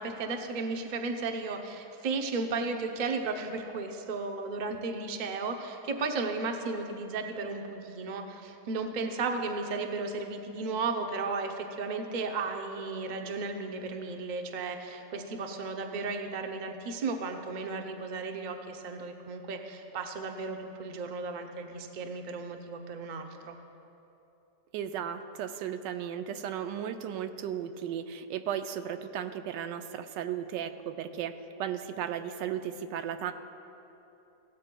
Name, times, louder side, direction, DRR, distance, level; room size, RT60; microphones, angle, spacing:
voice 1, 0.0-23.6, right 3 dB, 60° right, 4 dB, 0.5 m, -34 dB
voice 2, 24.7-31.3 31.6-33.3, right 9 dB, 90° right, 9 dB, 1.3 m, -35 dB
16.5 x 13.0 x 2.2 m, 3.0 s
omnidirectional pair, 1.9 m